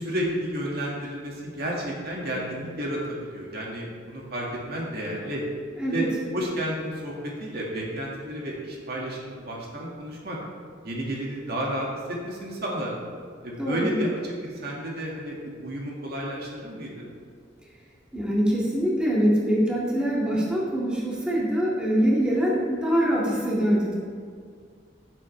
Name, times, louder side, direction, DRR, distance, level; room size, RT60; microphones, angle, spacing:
voice 1, 0.0-5.4 5.9-7.2 7.4-10.4 10.8-12.9 13.4-17.1, equal, 60° right, -3 dB, 2.0 m, -31 dB
voice 2, 13.6-14.0 18.1-23.9, equal, 5° right, -6 dB, 2.1 m, -24 dB
15.5 x 7.5 x 3.3 m, 2.1 s
head